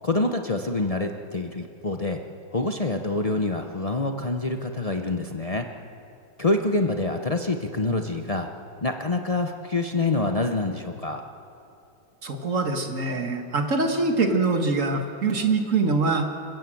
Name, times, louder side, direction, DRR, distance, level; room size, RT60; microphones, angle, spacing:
voice 1, 0.0-2.2 2.5-5.7 6.4-8.5 8.8-11.2, left 2 dB, 70° left, 4 dB, 0.3 m, -26 dB
voice 2, 12.2-16.3, right 3 dB, 40° right, 4 dB, 1.9 m, -24 dB
27.5 x 15.5 x 7.8 m, 2.6 s
omnidirectional pair, 2.2 m